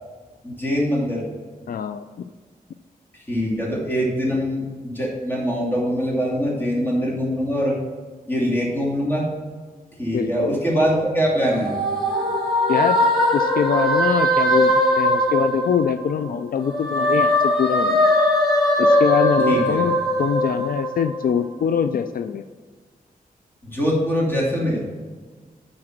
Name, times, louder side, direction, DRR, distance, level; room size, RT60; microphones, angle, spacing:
voice 1, 0.4-1.3 3.1-7.8 8.3-9.3 10.0-11.7 19.5-19.8 23.6-24.8, equal, 15° left, -4 dB, 2.6 m, -23 dB
voice 2, 1.7-2.0 10.1-10.6 12.7-13.0 13.3-18.1 18.8-22.4, left 7 dB, 70° left, 9 dB, 0.4 m, -23 dB
sound 1, 11.2-16.2 16.6-21.3, equal, ahead, 2.4 m, -20 dB
9.8 x 4.2 x 6.0 m, 1.4 s
wide cardioid pair, 100°, 16 cm